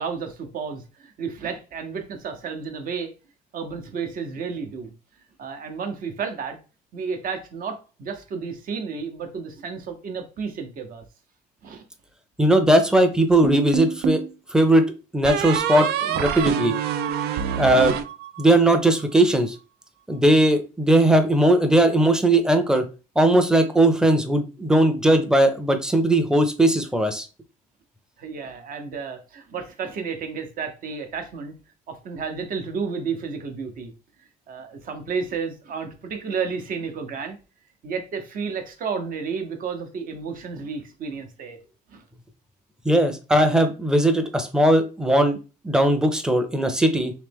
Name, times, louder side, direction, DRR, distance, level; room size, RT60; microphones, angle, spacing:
voice 1, 0.0-3.1 3.5-4.9 5.4-6.6 6.9-11.0 11.6-11.8 28.2-31.5 31.9-33.9 34.5-37.4 37.8-41.6 41.9-42.0, right 5 dB, 55° right, 0.9 m, -32 dB
voice 2, 12.4-14.2 14.5-14.8 15.1-16.7 17.6-18.0 18.4-19.6 20.1-22.8 23.2-27.3 42.8-45.4 45.6-47.1, right 1 dB, 5° right, 0.6 m, -19 dB
sound 1, 13.4-14.3 15.2-18.7, right 8 dB, 75° right, 0.4 m, -26 dB
3.2 x 3.0 x 3.5 m
cardioid pair, 110°, 17 cm